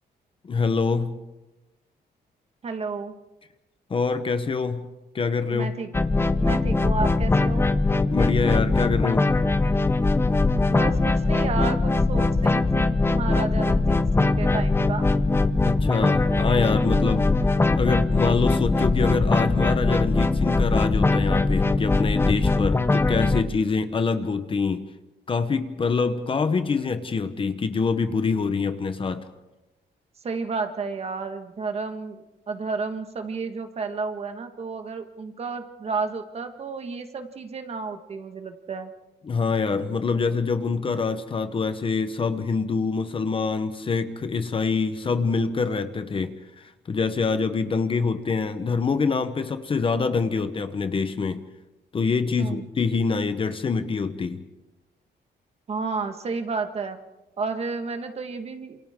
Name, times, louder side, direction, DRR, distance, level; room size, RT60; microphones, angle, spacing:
voice 1, 0.4-1.2 3.9-4.9 5.1-5.7 8.1-9.3 15.6-17.2 17.8-24.8 25.3-29.3 39.2-51.4 51.9-54.4, left 4 dB, 30° left, 1.0 m, -25 dB
voice 2, 2.6-3.1 5.5-7.7 10.7-15.1 16.9-17.4 30.2-38.9 52.4-52.6 55.7-57.0 57.4-58.8, right 4 dB, 35° right, 1.6 m, -32 dB
sound 1, 5.9-23.4, left 3 dB, 15° left, 0.6 m, -21 dB
28.0 x 27.5 x 3.7 m
wide cardioid pair, 170°, 18 cm